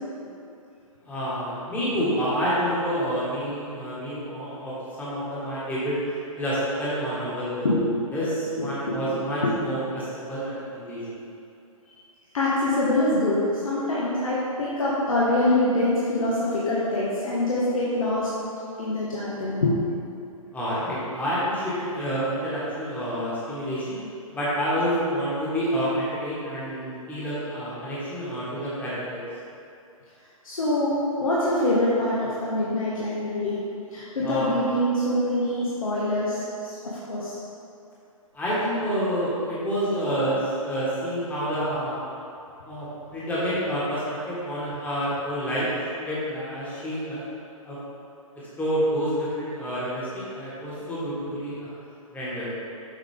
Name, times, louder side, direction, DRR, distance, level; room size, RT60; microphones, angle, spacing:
voice 1, 1.0-6.0 6.4-7.9 8.1-11.2 20.5-24.0 24.3-29.2 34.2-34.6 38.3-42.0 42.6-45.7 46.0-47.2 47.6-47.8 48.3-51.7 52.1-52.5, equal, 10° left, -9 dB, 1.6 m, -28 dB
voice 2, 8.6-9.0 9.4-9.5 12.3-18.3 18.8-19.8 30.4-33.6 33.9-36.7 37.1-37.4, left 1 dB, 70° left, -7 dB, 1.4 m, -24 dB
7.3 x 5.0 x 3.6 m, 2.7 s
figure-of-eight pair, 125°, 18 cm